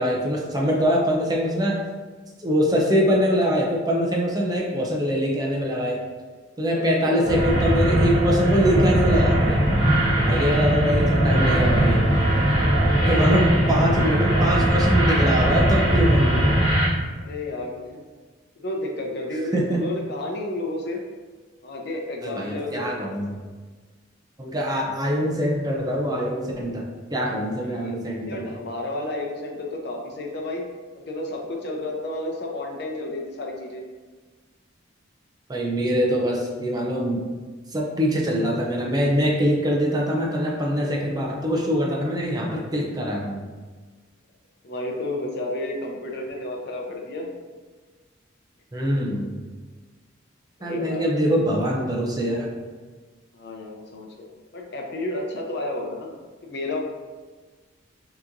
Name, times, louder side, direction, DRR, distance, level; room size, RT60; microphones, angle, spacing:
voice 1, 0.0-1.8 2.4-6.0 6.6-9.6 10.2-12.1 13.0-16.5 19.5-19.8 22.2-23.4 24.4-28.5 35.5-37.3 37.7-43.4 48.7-49.4 50.6-52.5, equal, 20° right, -2 dB, 0.6 m, -23 dB
voice 2, 6.7-7.5 10.8-11.6 13.1-13.5 17.2-18.0 18.6-21.0 21.6-22.9 27.6-28.0 28.3-30.6 30.9-33.8 44.6-47.3 50.6-51.1 53.3-54.1 54.5-56.1 56.4-56.8, left 1 dB, 55° left, 0 dB, 0.7 m, -31 dB
sound 1, 7.2-16.9, right 1 dB, 20° left, 0.9 m, -20 dB
6.0 x 3.0 x 2.6 m, 1.4 s
head